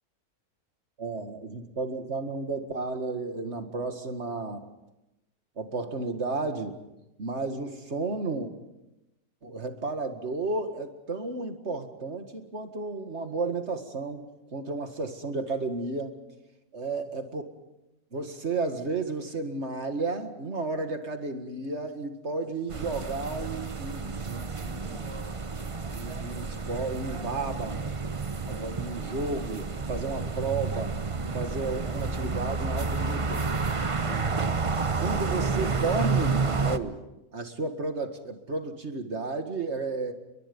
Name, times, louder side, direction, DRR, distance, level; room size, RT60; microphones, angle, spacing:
voice 1, 1.0-4.7 5.6-6.7 7.2-8.5 9.4-16.2 16.7-17.4 18.1-25.2 25.9-27.7 28.5-30.9 31.3-33.4 34.0-34.3 35.0-37.0 37.3-40.1, right 3 dB, 45° right, 7 dB, 2.1 m, -33 dB
sound 1, 22.7-36.8, right 4 dB, 30° right, 0.6 m, -30 dB
29.5 x 22.5 x 5.4 m, 0.93 s
omnidirectional pair, 1.6 m